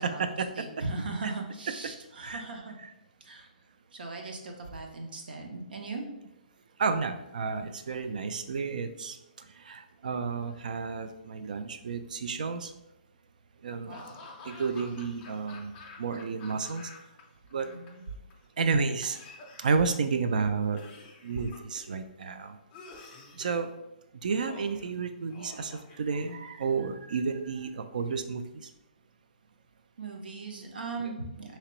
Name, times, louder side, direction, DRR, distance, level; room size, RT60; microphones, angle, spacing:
voice 1, 0.0-0.7 1.2-1.3 2.2-2.4 6.8-12.7 13.6-14.0 14.4-16.9 17.5-17.7 18.6-19.2 19.6-20.8 21.2-22.6 23.3-23.7 24.2-28.7 31.0-31.1, right 5 dB, 60° right, 9 dB, 0.3 m, -31 dB
voice 2, 0.6-2.8 3.2-3.5 3.9-6.1 13.8-14.2 17.6-18.0 30.0-31.6, right 3 dB, 75° right, 2 dB, 0.8 m, -38 dB
Laughter / Cough, 13.9-17.2 17.5-18.3 19.0-20.1 20.8-22.0 22.7-23.6 24.3-24.9 25.3-26.5, left 4 dB, 15° left, 0.4 m, -49 dB
3.3 x 2.9 x 3.0 m, 0.89 s
hypercardioid pair, 175°, 5 cm